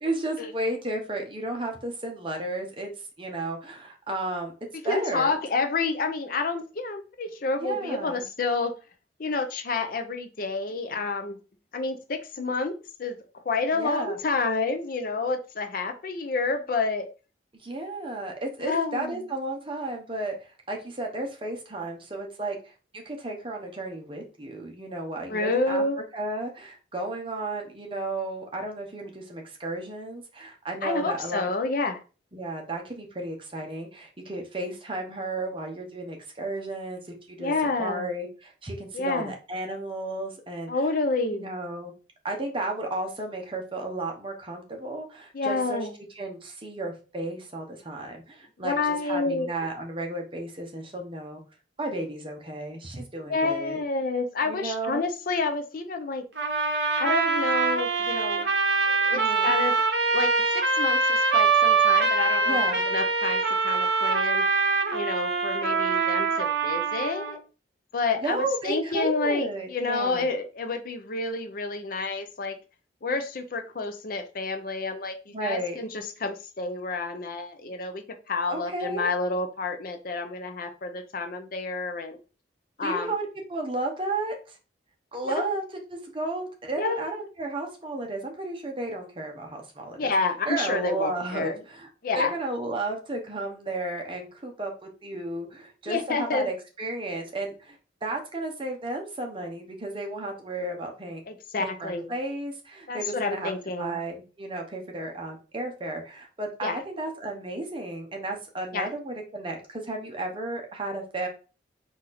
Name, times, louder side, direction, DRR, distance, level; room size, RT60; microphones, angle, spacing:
voice 1, 0.0-2.9 3.2-4.5 4.8-5.3 7.6-8.2 13.7-14.2 17.6-25.8 26.1-31.5 32.3-37.0 37.3-37.5 37.8-40.7 41.3-41.9 42.2-45.9 46.2-51.4 51.8-53.8 54.4-55.0 59.1-59.5 62.5-62.8 68.2-70.3 75.3-75.8 78.5-79.1 82.8-84.6 85.1-85.6 85.9-90.1 90.5-91.9 92.1-101.2 101.5-103.5 103.8-111.3, right 2 dB, 25° right, 2 dB, 0.8 m, -33 dB
voice 2, 4.8-8.7 9.2-11.4 11.7-12.7 13.0-17.1 18.6-19.2 25.3-26.0 30.8-32.0 37.4-38.1 38.9-39.3 40.7-41.5 45.3-45.9 48.6-49.5 53.3-56.2 57.0-58.5 58.9-59.7 60.1-62.6 62.8-64.4 64.9-67.4 67.9-72.6 73.0-82.2 82.8-83.1 85.3-85.5 86.7-87.2 90.0-91.6 92.0-92.3 95.9-96.5 101.3-102.1 102.9-104.0 106.6-106.8 108.7-108.9, left 3 dB, 50° left, 6 dB, 0.5 m, -29 dB
sound 1, 56.4-67.4, right 4 dB, 65° right, 0.8 m, -24 dB
4.1 x 2.5 x 4.0 m, 0.34 s
head